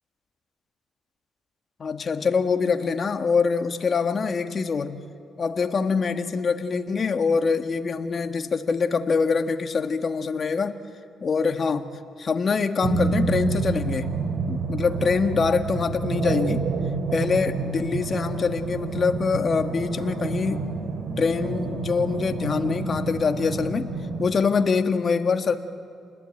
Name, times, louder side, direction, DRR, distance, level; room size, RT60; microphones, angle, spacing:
voice 1, 1.8-5.0 5.4-10.8 11.2-14.2 14.5-16.6 17.1-20.7 21.2-23.9 24.2-25.6, left 5 dB, 45° left, 7 dB, 1.6 m, -24 dB
sound 1, 12.8-24.4, right 4 dB, 65° right, 2.6 m, -28 dB
29.0 x 20.0 x 8.9 m, 2.5 s
cardioid pair, 90°, 0 cm